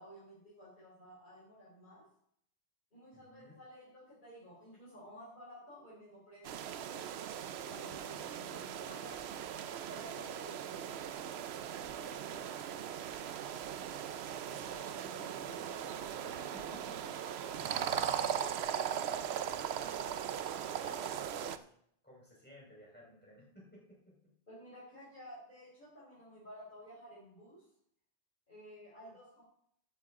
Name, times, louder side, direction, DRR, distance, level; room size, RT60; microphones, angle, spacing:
voice 1, 0.0-2.1 2.9-7.1 7.6-9.2 9.9-11.3 24.5-27.6 28.5-29.4, equal, 45° left, -8 dB, 4.5 m, -53 dB
voice 2, 3.1-3.6 12.1-13.5 14.4-19.9 20.5-21.7 22.0-24.2, left 1 dB, 10° left, -4 dB, 4.6 m, -57 dB
sound 1, 6.4-21.6, right 9 dB, 75° right, 0.9 m, -39 dB
Speech synthesizer, 14.5-17.5, right 1 dB, 45° right, 2.2 m, -56 dB
14.5 x 8.7 x 3.7 m, 0.69 s
omnidirectional pair, 1.1 m